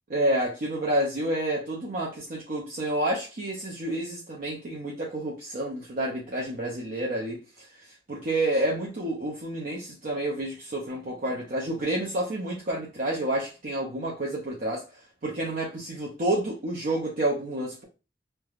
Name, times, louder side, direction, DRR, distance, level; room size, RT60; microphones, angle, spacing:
voice 1, 0.1-7.7 8.1-14.8 15.2-17.8, right 1 dB, 50° right, 0.5 m, -29 dB
3.2 x 2.2 x 2.3 m
head